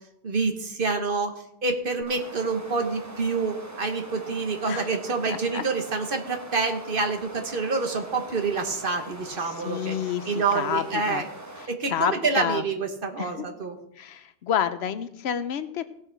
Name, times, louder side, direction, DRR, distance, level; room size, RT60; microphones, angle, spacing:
voice 1, 0.2-1.3 1.6-10.0 10.3-11.3 11.7-13.8, right 4 dB, 55° right, 5 dB, 1.3 m, -27 dB
sound 1, 2.0-11.7, right 1 dB, 15° right, 1.0 m, -42 dB
voice 2, 5.3-5.6 9.4-11.2 11.6-12.6 13.2-13.5 14.0-15.8, left 9 dB, 75° left, 13 dB, 0.9 m, -29 dB
16.5 x 6.1 x 4.5 m, 0.80 s
omnidirectional pair, 1.1 m